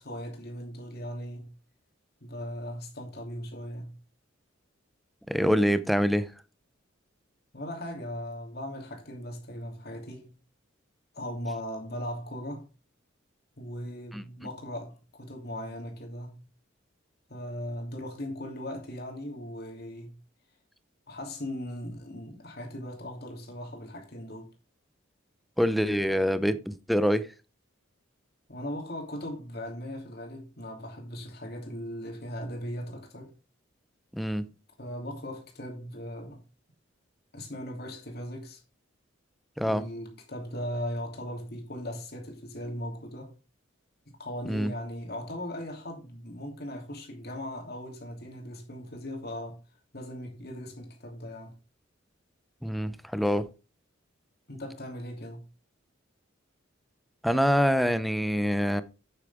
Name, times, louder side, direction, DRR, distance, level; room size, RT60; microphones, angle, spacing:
voice 1, 0.0-1.5 2.2-4.0 7.5-10.4 11.1-12.7 13.6-16.5 17.3-20.2 21.1-24.5 28.5-33.3 34.8-36.4 37.3-38.6 39.6-43.3 44.2-49.6 49.9-51.5 54.5-55.4, equal, 50° left, 2.9 m, -38 dB
voice 2, 5.3-6.3 14.1-14.2 25.6-27.3 34.1-34.5 39.6-39.8 44.5-44.7 52.6-53.5 57.2-58.8, equal, ahead, 0.6 m, -25 dB
8.8 x 8.4 x 3.6 m
head